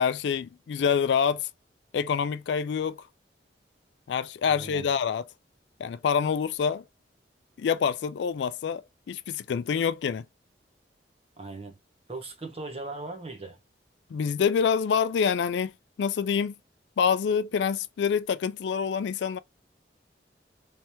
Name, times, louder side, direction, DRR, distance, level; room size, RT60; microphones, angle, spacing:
voice 1, 0.0-1.5 1.9-3.0 4.1-5.2 5.8-6.8 7.6-10.2 14.1-15.7 16.0-16.5 17.0-19.4, left 7 dB, 75° left, 0.3 m, -26 dB
voice 2, 4.5-4.9 11.4-11.8 12.1-13.6, right 2 dB, 35° right, 0.9 m, -38 dB
3.2 x 2.9 x 2.9 m
head